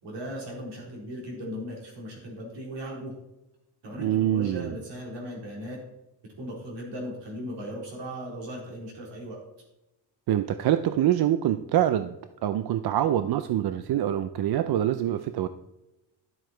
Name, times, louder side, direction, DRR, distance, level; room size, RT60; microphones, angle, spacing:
voice 1, 0.0-3.1 3.8-5.8 6.2-9.4, equal, 75° right, -3 dB, 4.1 m, -37 dB
voice 2, 4.0-4.7 10.3-12.2 12.4-15.5, right 11 dB, 60° right, 11 dB, 0.5 m, -25 dB
12.0 x 7.8 x 4.5 m, 0.95 s
wide cardioid pair, 165°, 43 cm